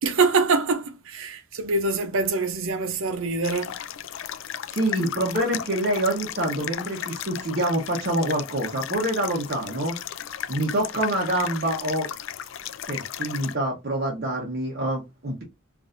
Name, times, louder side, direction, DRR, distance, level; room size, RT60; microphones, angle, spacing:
voice 1, 0.0-3.7, right 3 dB, 85° right, 0.7 m, -24 dB
sound 1, 3.4-13.5, left 9 dB, 75° left, 0.4 m, -35 dB
voice 2, 4.7-9.9 10.5-12.1 12.9-15.4, right 1 dB, 50° right, 0.9 m, -26 dB
4.7 x 2.5 x 2.5 m
head